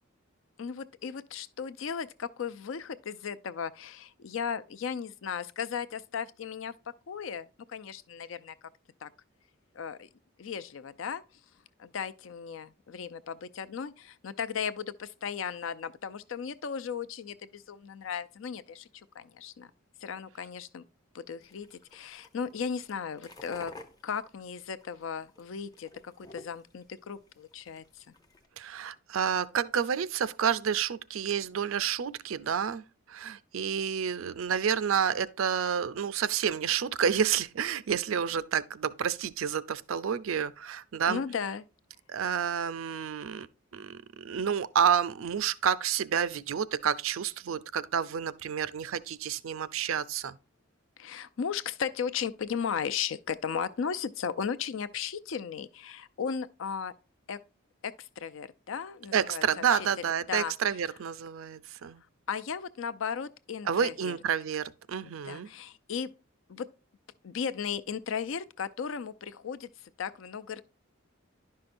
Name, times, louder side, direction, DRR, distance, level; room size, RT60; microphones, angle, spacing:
voice 1, 0.6-8.5 9.0-9.1 9.7-10.1 10.4-11.2 11.8-18.9 19.2-19.7 20.0-20.8 21.1-23.7 24.0-28.1 41.1-41.7 51.0-56.9 57.3-57.4 57.8-59.9 60.3-60.5 62.3-64.2 65.0-66.1 66.5-66.7 67.2-70.6, left 7 dB, 65° left, 0.4 m, -36 dB
sound 1, 21.4-28.5, left 2 dB, 20° left, 0.6 m, -53 dB
voice 2, 28.6-32.8 33.1-41.2 42.1-43.5 43.7-50.4 59.1-62.0 63.7-65.5, right 8 dB, 75° right, 0.4 m, -29 dB
10.5 x 5.7 x 2.5 m
head